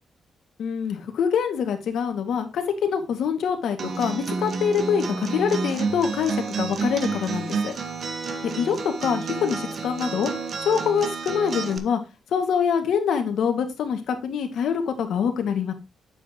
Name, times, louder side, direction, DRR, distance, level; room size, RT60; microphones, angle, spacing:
voice 1, 0.6-7.8 8.4-10.3 10.6-12.0 12.3-15.7, left 7 dB, 70° left, 6 dB, 2.0 m, -25 dB
Acoustic guitar, 3.8-11.8, right 4 dB, 45° right, 1.3 m, -30 dB
9.3 x 8.1 x 3.0 m, 0.24 s
cardioid pair, 145°, 0 cm